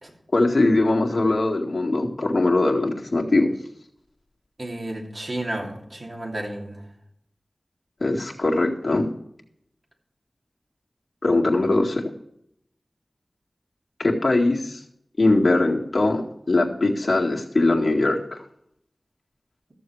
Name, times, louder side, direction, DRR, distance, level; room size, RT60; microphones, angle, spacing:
voice 1, 0.3-3.5 8.0-9.1 11.2-12.0 14.0-14.8 15.2-18.2, left 2 dB, 60° left, -1 dB, 2.0 m, -21 dB
voice 2, 4.6-6.8, right 1 dB, 50° right, 0 dB, 3.0 m, -32 dB
13.5 x 7.1 x 4.8 m, 0.74 s
wide cardioid pair, 50°, 0 cm